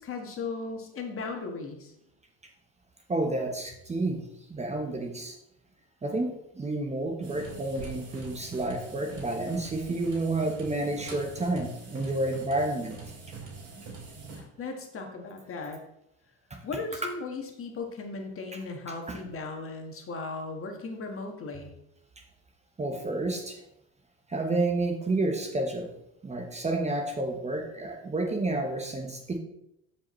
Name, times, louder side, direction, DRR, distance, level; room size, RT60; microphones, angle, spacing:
voice 1, 0.0-1.9 14.3-15.8 16.6-21.7, left 3 dB, 40° left, 3 dB, 1.6 m, -37 dB
voice 2, 3.1-4.2 4.5-5.4 6.0-13.0 16.5-16.6 19.1-19.2 22.8-23.6 24.3-25.9 26.2-29.4, right 2 dB, 20° right, 3 dB, 1.1 m, -30 dB
sound 1, 7.2-14.4, right 4 dB, 55° right, 3.6 m, -43 dB
13.5 x 5.2 x 3.2 m, 0.81 s
supercardioid pair, 110°, 35 cm